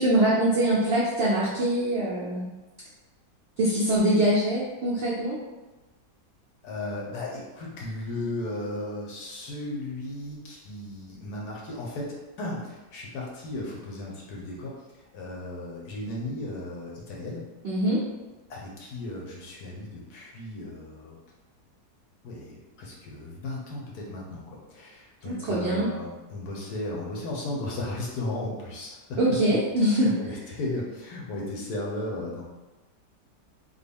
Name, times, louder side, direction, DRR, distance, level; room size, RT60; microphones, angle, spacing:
voice 1, 0.0-2.4 3.6-5.4 17.6-18.0 25.2-25.9 29.2-30.1, right 1 dB, 70° right, -7 dB, 0.6 m, -23 dB
voice 2, 6.6-17.4 18.5-21.2 22.2-29.2 29.9-32.4, left 2 dB, 65° left, -3 dB, 1.1 m, -35 dB
3.7 x 2.1 x 3.4 m, 1.1 s
omnidirectional pair, 1.9 m